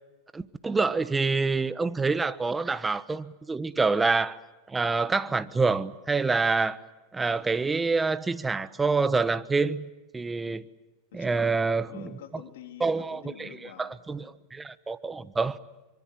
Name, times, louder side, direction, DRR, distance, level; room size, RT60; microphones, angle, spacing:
voice 1, 0.3-4.4 4.7-6.8 7.1-9.8 10.1-10.7 11.1-12.1 12.8-13.5 13.8-15.6, right 4 dB, 15° right, 1.2 m, -27 dB
voice 2, 11.1-11.6 11.9-14.4, left 10 dB, 80° left, 3.7 m, -47 dB
26.0 x 25.0 x 7.7 m
supercardioid pair, 120°, 0 cm